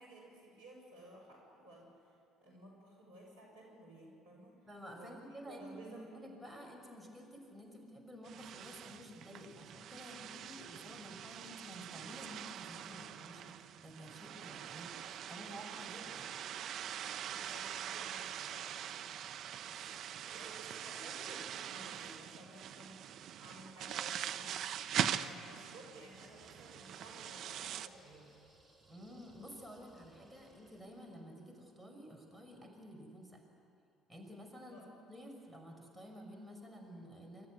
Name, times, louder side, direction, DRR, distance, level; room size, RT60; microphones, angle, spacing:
voice 1, 0.0-4.6 4.9-6.3 17.1-19.0 19.7-24.6 25.0-28.4 34.7-34.8, right 1 dB, 85° right, -3 dB, 6.0 m, -55 dB
voice 2, 4.7-16.3 28.9-33.4 34.1-34.8 35.1-37.5, equal, 5° right, 1 dB, 5.5 m, -51 dB
sound 1, 8.2-27.9, right 10 dB, 55° right, 0.8 m, -43 dB
sound 2, 25.9-31.3, right 2 dB, 20° right, 5.6 m, -65 dB
26.5 x 13.5 x 9.6 m, 2.5 s
hypercardioid pair, 55°, 0 cm